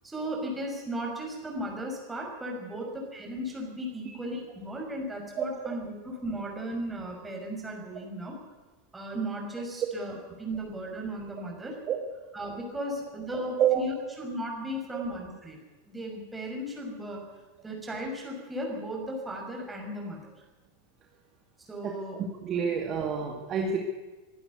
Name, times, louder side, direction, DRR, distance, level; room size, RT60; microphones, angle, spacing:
voice 1, 0.0-8.4 8.9-11.8 12.3-15.6 15.8-17.2 17.6-20.2 21.6-22.2, right 1 dB, 10° right, 0 dB, 6.2 m, -36 dB
voice 2, 13.6-14.1 14.9-15.0 21.8-21.9 22.4-23.8, right 7 dB, 30° right, 2 dB, 2.3 m, -28 dB
23.0 x 11.5 x 9.7 m, 1.2 s
figure-of-eight pair, 90°, 0 cm